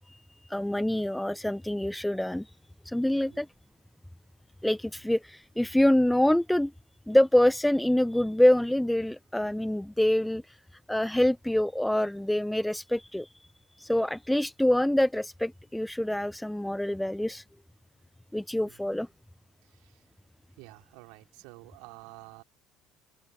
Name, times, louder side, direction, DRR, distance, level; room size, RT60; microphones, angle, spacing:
voice 1, 0.5-2.5 2.8-3.5 4.6-6.7 7.1-10.6 10.9-13.3 13.8-17.4 18.3-19.1, left 1 dB, 5° left, 1.1 m, -25 dB
voice 2, 19.6-20.0 20.6-22.4, right 32 dB, 65° right, 4.9 m, -50 dB
open air
figure-of-eight pair, 60°, 0 cm